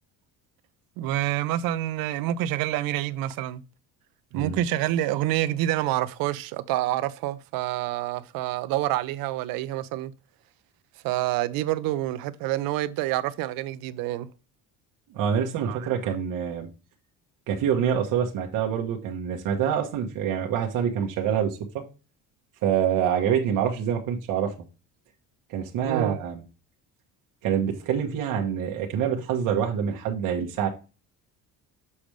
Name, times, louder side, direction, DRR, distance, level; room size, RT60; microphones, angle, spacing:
voice 1, 1.0-3.6 4.3-10.1 11.0-14.3 15.7-15.9 25.8-26.2, right 14 dB, 80° right, 0.7 m, -27 dB
voice 2, 15.1-16.7 17.5-21.8 22.6-24.5 25.5-26.4 27.4-30.7, right 8 dB, 65° right, 1.4 m, -26 dB
7.1 x 5.1 x 3.2 m
cardioid pair, 165°, 34 cm